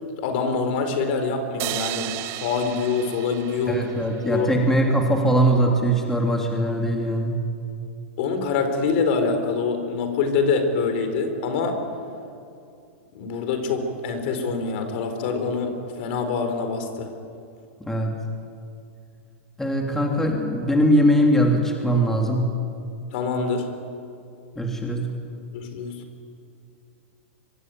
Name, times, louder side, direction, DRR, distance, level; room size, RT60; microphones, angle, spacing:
voice 1, 0.1-3.8 4.3-4.5 8.2-11.8 13.1-17.1 23.1-23.7 25.5-26.0, left 4 dB, 55° left, 7 dB, 4.5 m, -25 dB
sound 1, 1.6-4.9, right 15 dB, 35° right, 1.2 m, -34 dB
voice 2, 3.7-7.4 17.8-18.1 19.6-22.5 24.6-25.1, right 1 dB, 5° left, 1 dB, 3.0 m, -21 dB
25.0 x 24.5 x 9.4 m, 2.5 s
hypercardioid pair, 140°, 7 cm